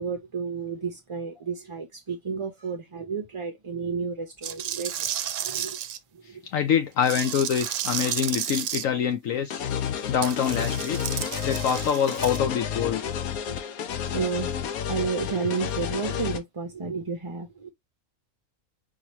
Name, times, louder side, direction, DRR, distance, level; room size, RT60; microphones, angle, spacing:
voice 1, 0.0-5.1 5.4-5.8 6.1-6.4 14.1-14.5 14.9-17.7, right 5 dB, 30° right, 0.6 m, -31 dB
sound 1, 4.4-6.0 7.0-8.8 10.2-12.4, right 10 dB, 70° right, 0.9 m, -32 dB
voice 2, 6.5-9.7 10.1-11.0 11.4-13.0, left 8 dB, 70° left, 1.0 m, -25 dB
sound 2, 9.5-16.4, left 8 dB, 85° left, 1.2 m, -31 dB
4.8 x 2.9 x 3.0 m
omnidirectional pair, 1.5 m